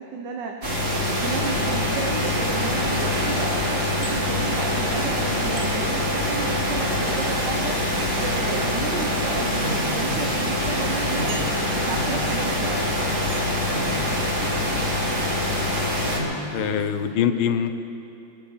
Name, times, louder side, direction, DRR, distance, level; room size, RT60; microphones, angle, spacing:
voice 1, 0.0-11.4 11.7-13.0, right 5 dB, 65° right, 1 dB, 1.6 m, -33 dB
sound 1, 0.6-16.2, left 1 dB, 40° right, 2.8 m, -24 dB
sound 2, 4.0-4.2 5.6-5.7 7.2-7.3 8.7-8.9 9.7-9.8 10.1-10.2 11.3-11.9 12.3-12.6 13.3-13.6 14.8-15.0, right 6 dB, 85° right, 1.8 m, -41 dB
sound 3, 7.1-17.1, left 1 dB, 25° right, 4.2 m, -38 dB
voice 2, 14.6-15.1 16.5-17.7, left 8 dB, 90° left, 9 dB, 1.6 m, -25 dB
23.0 x 10.5 x 5.5 m, 2.8 s
omnidirectional pair, 2.2 m